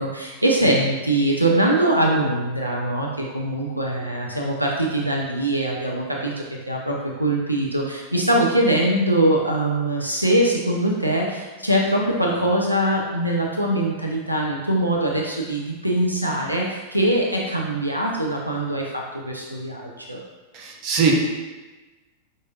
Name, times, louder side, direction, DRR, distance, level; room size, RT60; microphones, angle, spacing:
voice 1, 0.0-20.2, right 1 dB, 90° right, -1 dB, 0.4 m, -22 dB
voice 2, 20.5-21.1, right 6 dB, 40° right, 0 dB, 0.6 m, -21 dB
5.2 x 2.5 x 2.4 m, 1.2 s
figure-of-eight pair, 90°, 0 cm